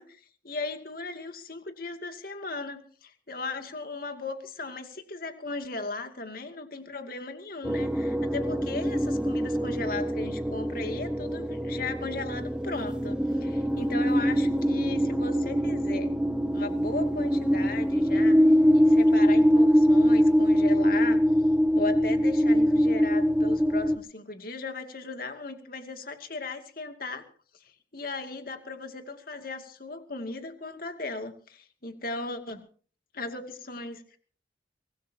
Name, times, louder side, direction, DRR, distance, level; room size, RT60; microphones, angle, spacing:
voice 1, 0.0-16.1 16.5-18.4 18.7-21.2 21.7-27.2 27.6-32.7 33.1-34.2, left 3 dB, 50° left, 6 dB, 2.5 m, -37 dB
sound 1, 7.6-24.0, equal, 5° right, 1.0 m, -23 dB
24.5 x 18.5 x 2.9 m, 0.42 s
head